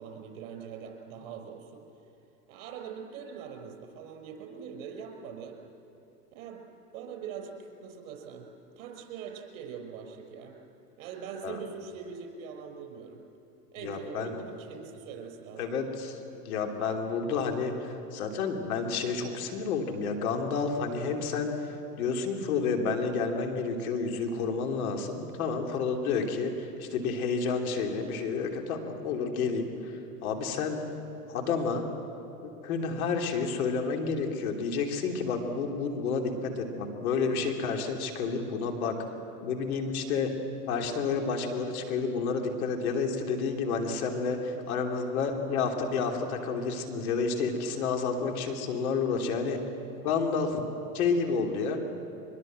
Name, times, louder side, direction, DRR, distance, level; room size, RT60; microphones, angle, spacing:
voice 1, 0.0-1.8 2.5-5.6 6.3-6.6 6.9-8.5 8.8-10.6 11.0-13.2 13.7-15.9, right 6 dB, 55° right, 3 dB, 5.5 m, -42 dB
voice 2, 13.8-14.3 15.6-30.8 31.3-31.9 32.4-39.0 39.4-40.3 40.7-49.6 50.0-50.6 50.9-51.8, left 5 dB, 60° left, 3 dB, 3.3 m, -30 dB
23.5 x 21.5 x 7.7 m, 2.9 s
hypercardioid pair, 125°, 47 cm